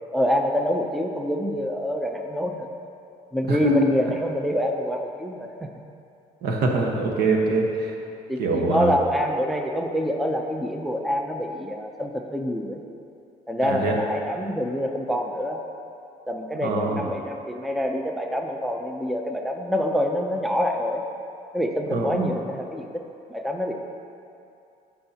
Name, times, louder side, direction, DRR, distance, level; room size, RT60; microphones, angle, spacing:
voice 1, 0.1-2.7 3.3-5.7 8.3-12.8 13.5-15.6 16.3-21.0 21.5-23.0 23.3-23.7, equal, ahead, 3 dB, 0.5 m, -26 dB
voice 2, 3.5-3.9 6.4-7.9 8.4-8.9 13.6-14.0 16.6-17.1 21.9-22.3, right 3 dB, 70° right, 1 dB, 1.2 m, -23 dB
14.5 x 5.7 x 2.9 m, 2.6 s
cardioid pair, 110°, 17 cm